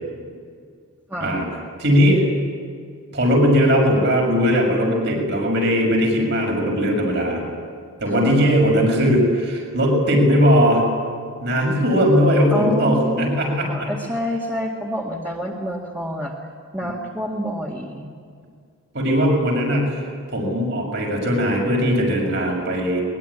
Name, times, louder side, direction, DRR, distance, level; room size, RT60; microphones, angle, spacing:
voice 1, 1.8-2.3 3.1-7.4 8.0-10.8 11.4-13.9 18.9-20.0 20.3-23.0, equal, 50° right, 1 dB, 6.5 m, -19 dB
voice 2, 12.5-13.4 13.7-16.3 16.7-18.1, equal, 10° right, -3 dB, 2.1 m, -27 dB
22.5 x 22.0 x 9.8 m, 2.1 s
head